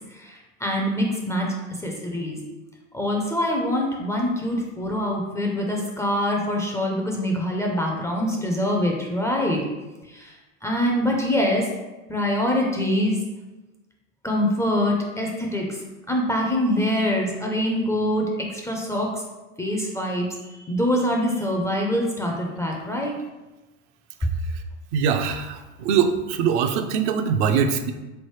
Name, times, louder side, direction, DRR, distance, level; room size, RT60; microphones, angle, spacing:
voice 1, 0.1-1.5 1.8-2.4 2.9-9.6 10.1-10.3 10.6-11.7 12.1-13.2 14.2-15.8 16.1-19.2 19.6-20.3 20.6-23.1, left 1 dB, 10° left, -1 dB, 0.4 m, -24 dB
voice 2, 24.9-27.9, right 7 dB, 60° right, 6 dB, 0.5 m, -22 dB
3.8 x 3.2 x 3.1 m, 1.1 s
hypercardioid pair, 90°, 39 cm